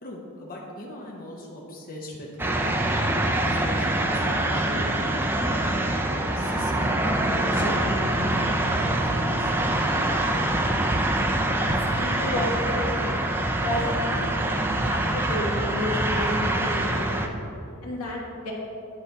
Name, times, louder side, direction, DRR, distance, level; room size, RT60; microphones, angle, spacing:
voice 1, 0.0-2.8 3.5-5.5 6.1-7.0 7.5-8.3 8.8-10.2, left 1 dB, 45° left, -2 dB, 0.9 m, -39 dB
sound 1, 2.4-17.3, right 1 dB, 10° right, 0.4 m, -25 dB
voice 2, 11.9-13.2 13.6-14.4 14.9-17.3 17.8-18.5, left 1 dB, 90° left, -2 dB, 1.5 m, -31 dB
10.0 x 5.0 x 4.0 m, 2.7 s
head